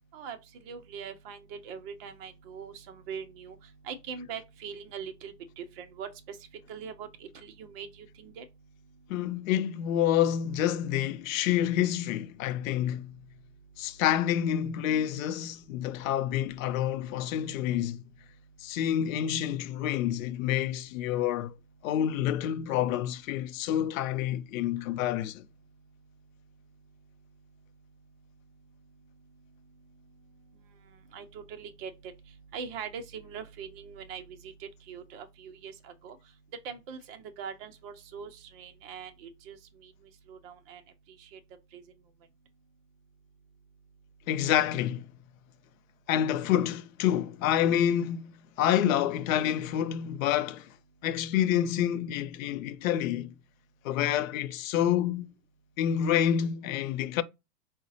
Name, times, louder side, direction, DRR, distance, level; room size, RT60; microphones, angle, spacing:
voice 1, 0.1-6.4 6.7-8.5 31.1-32.1 32.5-36.2 36.6-39.9 40.3-40.8 41.2-41.4 41.7-41.8, right 6 dB, 40° right, 0.5 m, -42 dB
voice 2, 9.1-13.1 13.8-18.0 18.6-21.5 21.8-25.5 44.3-45.1 46.1-48.3 48.6-50.7 51.0-53.3 53.8-55.3 55.8-57.2, left 10 dB, 55° left, 0.5 m, -28 dB
4.9 x 2.1 x 2.6 m
hypercardioid pair, 120°, 49 cm